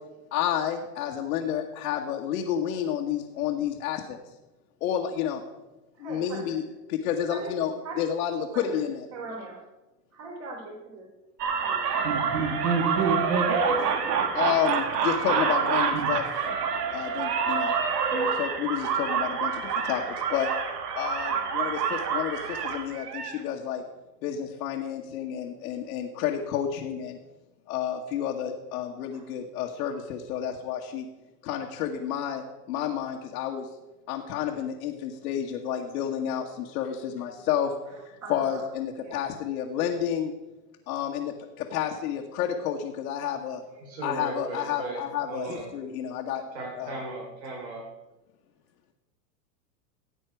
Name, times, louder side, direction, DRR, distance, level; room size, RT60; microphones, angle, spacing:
voice 1, 0.3-4.2 4.8-5.4 6.0-6.6 6.9-9.1 14.3-16.3 16.9-17.7 18.1-20.5 20.9-23.8 24.2-27.2 27.7-31.0 31.4-33.7 34.1-37.7 38.3-40.3 40.9-43.6 44.0-46.4 46.8-46.9, left 9 dB, 65° left, -1 dB, 1.7 m, -30 dB
voice 2, 6.0-6.6 7.3-7.5 7.8-8.0 8.5-8.8 9.1-9.6 10.1-11.1 11.6-12.1 21.3-21.7 29.1-29.2 38.2-38.6 39.0-39.2, right 3 dB, 30° right, -1 dB, 3.4 m, -41 dB
sound 1, 11.4-23.4, right 6 dB, 70° right, 2.0 m, -27 dB
voice 3, 43.8-45.0 45.3-45.7 46.5-47.8, right 2 dB, 85° right, 1 dB, 3.5 m, -36 dB
16.5 x 8.6 x 4.6 m, 1.0 s
hypercardioid pair, 125°, 49 cm